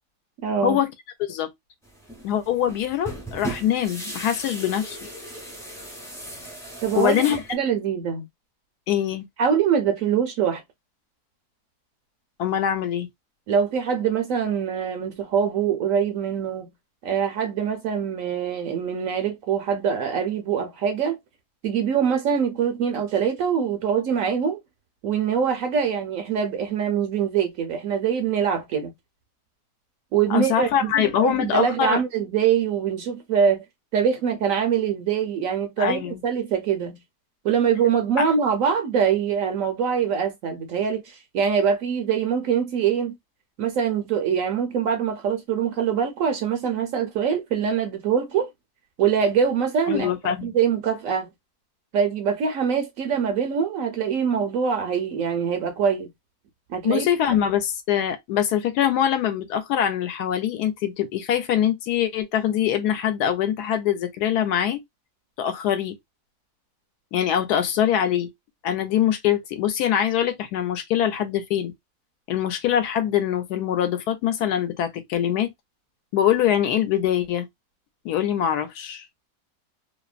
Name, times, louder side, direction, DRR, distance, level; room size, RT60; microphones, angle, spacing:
voice 1, 0.4-0.8 6.8-7.2 7.5-8.3 9.4-10.6 13.5-16.7 17.0-21.2 21.6-24.6 25.0-28.9 30.1-30.9 31.2-33.6 33.9-37.0 37.4-43.1 43.6-48.5 49.0-50.1 50.4-51.3 51.9-56.1 56.7-57.4, right 7 dB, 70° right, 0.9 m, -23 dB
Roomtone of kitchen with Window Open, 1.8-7.5, right 1 dB, 5° left, 0.3 m, -37 dB
voice 2, 2.2-5.0 6.9-7.4 8.9-9.3 12.4-13.1 30.3-32.0 35.8-36.2 49.9-50.5 56.8-64.8 65.4-65.9 67.1-68.3 68.6-71.7 72.3-75.5 76.1-77.5 78.0-79.1, left 10 dB, 75° left, 1.1 m, -23 dB
2.8 x 2.1 x 2.3 m
omnidirectional pair, 1.7 m